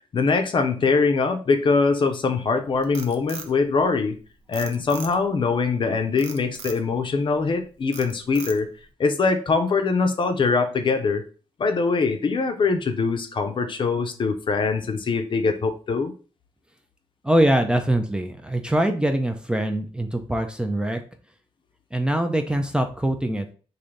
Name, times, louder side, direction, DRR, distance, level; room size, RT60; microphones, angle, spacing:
voice 1, 0.1-4.2 4.5-8.7 9.0-11.2 11.6-16.1, left 4 dB, 50° left, 6 dB, 0.6 m, -22 dB
Frog, 2.6-4.2 4.5-5.4 6.2-6.8 7.3-7.6 7.9-8.8, right 6 dB, 85° right, 0.6 m, -39 dB
voice 2, 17.2-21.0 21.9-23.5, right 1 dB, 10° right, 6 dB, 0.4 m, -23 dB
3.2 x 2.7 x 3.8 m, 0.38 s
cardioid pair, 100°, 11 cm